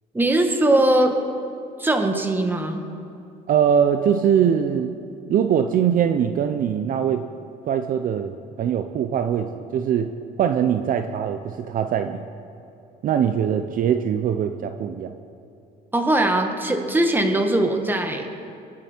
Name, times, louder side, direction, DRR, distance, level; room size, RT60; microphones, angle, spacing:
voice 1, 0.1-1.2 1.8-2.8 15.9-18.3, right 1 dB, 10° right, 4 dB, 1.7 m, -20 dB
voice 2, 3.5-4.9 5.3-7.2 7.7-8.3 8.6-10.1 10.4-12.2 13.0-15.1, right 8 dB, 55° right, 8 dB, 0.7 m, -22 dB
24.5 x 8.8 x 4.5 m, 2.7 s
cardioid pair, 110°, 17 cm